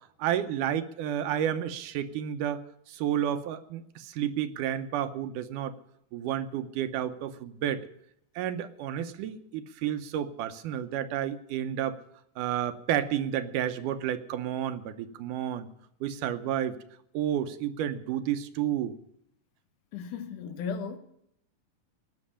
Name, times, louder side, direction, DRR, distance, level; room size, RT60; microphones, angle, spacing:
voice 1, 0.2-2.6 2.9-5.7 6.1-7.8 8.4-12.0 12.4-15.7 16.0-16.8 17.1-18.9, right 10 dB, 80° right, 2.3 m, -31 dB
voice 2, 19.9-21.0, left 6 dB, 75° left, 2.4 m, -35 dB
17.0 x 6.4 x 9.9 m
omnidirectional pair, 3.7 m